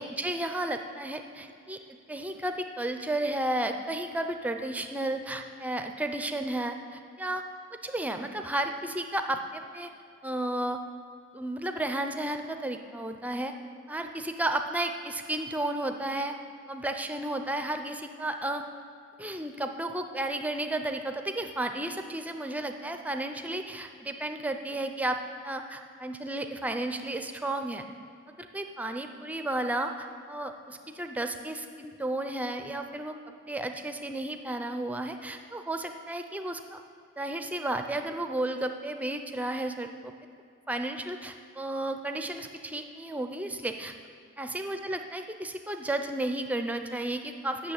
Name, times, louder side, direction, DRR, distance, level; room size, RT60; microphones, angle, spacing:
voice 1, 0.0-7.4 7.8-9.9 10.2-10.8 11.3-13.5 13.9-16.4 16.7-18.6 19.2-25.2 25.4-27.8 28.3-36.8 37.2-40.1 40.7-43.9 44.4-47.7, right 1 dB, 5° right, 6 dB, 0.4 m, -33 dB
8.7 x 6.6 x 8.2 m, 2.3 s
head